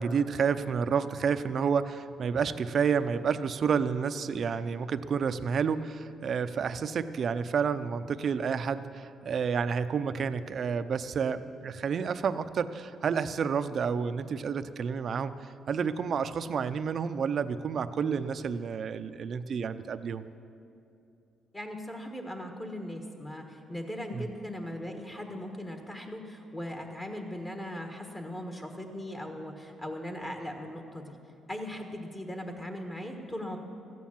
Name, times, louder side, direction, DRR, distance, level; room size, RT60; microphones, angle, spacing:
voice 1, 0.0-15.3 15.7-20.3 24.1-24.2, right 6 dB, 55° right, 12 dB, 0.5 m, -30 dB
voice 2, 21.5-31.2 31.5-33.6, left 1 dB, 20° left, 4 dB, 1.4 m, -39 dB
14.0 x 9.3 x 7.2 m, 2.6 s
cardioid pair, 90°, 0 cm